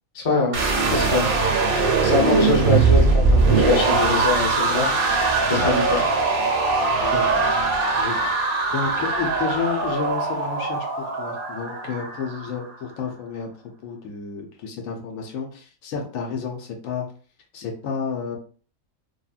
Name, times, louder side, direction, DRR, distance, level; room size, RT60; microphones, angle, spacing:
voice 1, 0.1-0.6 0.9-1.3 2.0-6.0, left 3 dB, 35° left, -2 dB, 0.6 m, -23 dB
sound 1, 0.5-12.6, right 4 dB, 60° right, 0.6 m, -21 dB
voice 2, 2.2-2.7 7.0-7.5 8.0-8.3 8.7-13.5 13.8-17.1 17.5-18.4, left 6 dB, 80° left, 2 dB, 1.0 m, -31 dB
2.7 x 2.3 x 2.3 m, 0.41 s
omnidirectional pair, 1.4 m